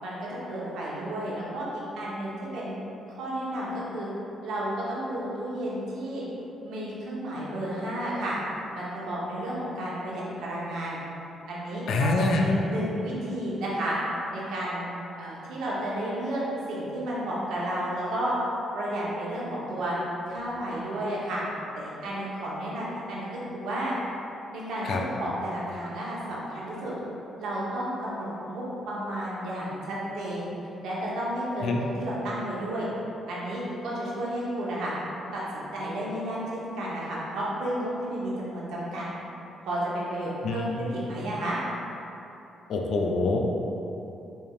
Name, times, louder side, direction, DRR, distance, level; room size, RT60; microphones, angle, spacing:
voice 1, 0.0-2.7 3.1-4.1 4.4-6.2 6.6-8.4 8.7-11.0 11.5-14.0 14.3-14.8 15.2-16.4 16.7-18.3 18.7-20.0 20.3-21.4 21.7-23.9 24.5-26.9 27.4-30.4 30.8-32.9 33.3-34.9 35.3-39.1 39.6-41.6, right 1 dB, 80° right, -6 dB, 0.9 m, -32 dB
voice 2, 11.9-12.6 24.8-25.0 31.6-31.8 40.4-40.8 42.7-43.4, left 2 dB, 70° left, 1 dB, 0.4 m, -25 dB
4.6 x 3.4 x 2.4 m, 3.0 s
cardioid pair, 90°, 0 cm